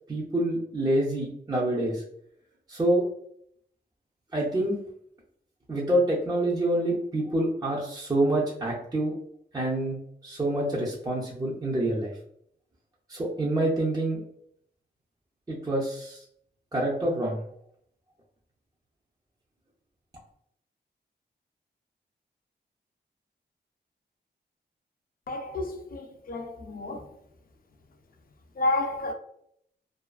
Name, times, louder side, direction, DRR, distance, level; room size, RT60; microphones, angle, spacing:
voice 1, 0.1-2.0 2.7-3.0 4.3-4.8 5.7-9.1 9.5-12.1 13.1-14.2 15.5-16.2 16.7-17.4, right 1 dB, 20° right, 0.5 m, -27 dB
voice 2, 25.3-27.1 28.6-29.1, left 2 dB, 55° left, 0.4 m, -30 dB
2.4 x 2.3 x 2.3 m
wide cardioid pair, 115°, 18 cm